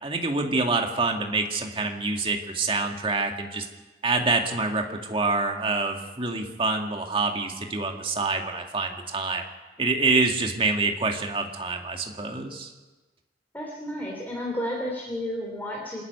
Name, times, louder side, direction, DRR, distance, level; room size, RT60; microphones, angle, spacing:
voice 1, 0.0-3.7 4.0-9.4 9.8-12.7, right 3 dB, 30° right, 3 dB, 2.0 m, -26 dB
voice 2, 13.5-16.0, equal, 10° left, -2 dB, 3.2 m, -32 dB
26.5 x 10.5 x 9.5 m, 1.2 s
head